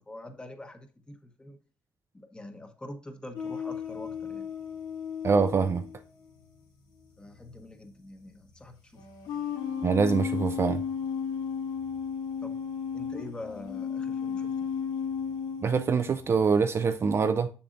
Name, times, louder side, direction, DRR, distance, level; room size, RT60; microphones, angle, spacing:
voice 1, 0.0-1.6 2.1-4.5 7.2-9.0 12.4-12.6 12.9-14.7, left 1 dB, 10° left, 1.1 m, -45 dB
sound 1, 3.3-6.7 7.5-7.6 8.9-16.7, left 7 dB, 90° left, 2.2 m, -34 dB
voice 2, 5.2-5.8 9.8-10.8 15.6-17.5, right 5 dB, 35° right, 0.4 m, -24 dB
7.1 x 6.9 x 2.5 m
cardioid pair, 120°, 7 cm